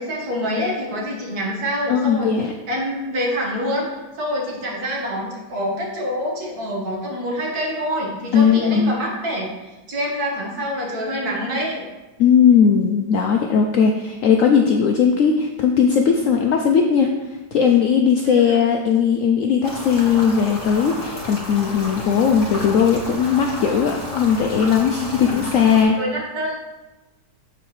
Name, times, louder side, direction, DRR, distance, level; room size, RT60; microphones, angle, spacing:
voice 1, 0.0-2.3 2.7-11.9 18.2-18.6 25.1-25.5 25.9-26.5, equal, 60° right, -2 dB, 1.9 m, -26 dB
voice 2, 1.9-2.5 8.3-8.9 12.2-26.0, left 7 dB, 80° left, 3 dB, 0.7 m, -18 dB
sound 1, 19.6-25.8, left 1 dB, 30° left, 2.0 m, -32 dB
6.9 x 6.7 x 3.1 m, 1.1 s
omnidirectional pair, 1.9 m